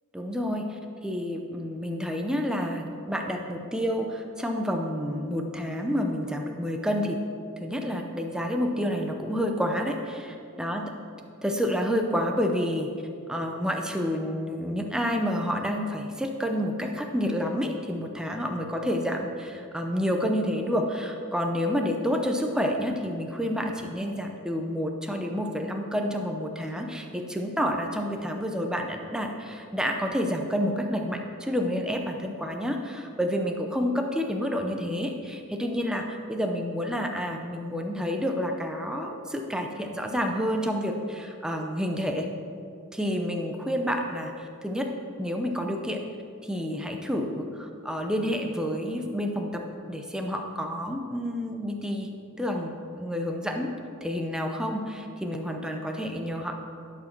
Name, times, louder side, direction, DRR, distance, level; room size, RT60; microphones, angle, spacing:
voice 1, 0.1-7.2 7.6-10.9 11.4-12.9 13.3-42.3 42.9-44.9 45.2-46.0 46.4-52.1 52.4-53.7 54.0-56.5, equal, 5° right, 2 dB, 0.7 m, -29 dB
11.5 x 4.8 x 6.1 m, 2.4 s
head